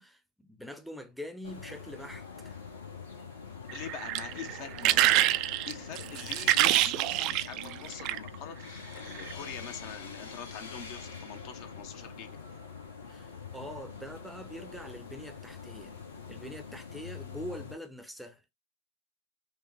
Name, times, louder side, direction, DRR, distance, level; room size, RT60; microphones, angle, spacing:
voice 1, 0.0-2.5 13.1-15.9 16.3-18.5, equal, ahead, 0.6 m, -44 dB
sound 1, 1.4-17.7, left 5 dB, 70° left, 1.1 m, -45 dB
voice 2, 3.7-5.2 5.7-12.4, left 8 dB, 45° left, 0.7 m, -44 dB
sound 2, 3.7-8.4 9.1-9.3, right 15 dB, 40° right, 0.3 m, -26 dB
5.2 x 2.1 x 4.6 m
figure-of-eight pair, 90°, 0 cm